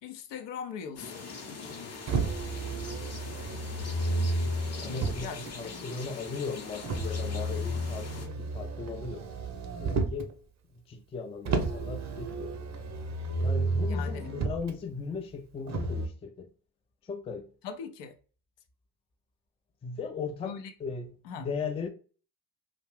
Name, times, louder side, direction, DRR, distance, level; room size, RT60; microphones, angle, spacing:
voice 1, 0.0-2.4 5.2-6.0 13.8-14.3 17.6-18.2 20.4-20.7 21.2-21.5, left 6 dB, 70° left, 0.6 m, -42 dB
sound 1, 1.0-8.3, left 4 dB, 35° left, 0.7 m, -43 dB
Motor vehicle (road), 2.1-5.5 6.8-10.3 11.5-14.7 15.7-16.1, right 2 dB, 40° right, 0.6 m, -32 dB
voice 2, 4.8-9.3 9.8-10.3 10.9-12.5 13.4-16.5 17.1-17.5 19.8-21.9, left 5 dB, 15° left, 0.3 m, -37 dB
2.4 x 2.1 x 3.2 m
hypercardioid pair, 45°, 45 cm